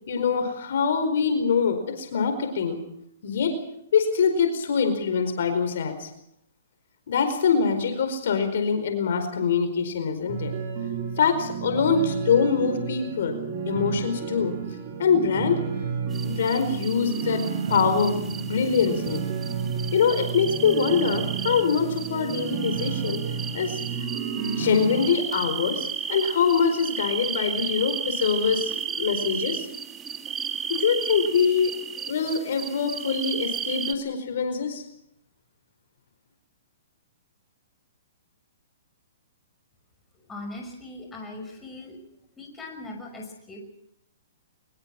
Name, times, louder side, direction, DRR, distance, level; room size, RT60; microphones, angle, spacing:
voice 1, 0.1-2.8 3.2-3.5 3.9-6.1 7.1-10.5 11.2-13.4 13.7-14.6 15.0-15.6 16.2-17.4 17.7-19.2 19.9-23.2 23.5-23.8 24.4-29.7 30.7-31.7 32.1-34.8, left 6 dB, 65° left, 7 dB, 4.7 m, -24 dB
sound 1, 10.3-25.1, right 6 dB, 45° right, 7.0 m, -31 dB
sound 2, 16.1-33.9, right 7 dB, 15° right, 1.6 m, -34 dB
voice 2, 40.3-42.0 42.4-43.6, left 2 dB, 10° left, 2 dB, 6.0 m, -39 dB
23.0 x 22.0 x 6.1 m, 0.76 s
hypercardioid pair, 140°, 0 cm